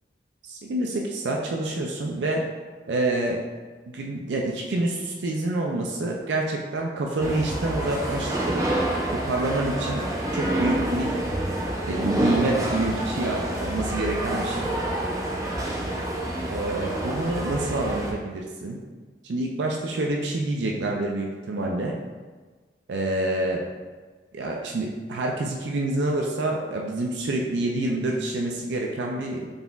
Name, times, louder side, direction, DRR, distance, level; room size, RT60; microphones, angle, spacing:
voice 1, 0.4-2.4 2.9-3.4 3.9-8.6 9.1-10.0 10.3-11.2 11.8-14.7 16.5-18.8 19.2-22.0 22.9-23.6 24.3-29.5, right 2 dB, 85° right, 0 dB, 0.4 m, -27 dB
sound 1, 7.2-18.1, right 1 dB, 20° right, 0.5 m, -28 dB
3.9 x 3.8 x 2.3 m, 1.4 s
head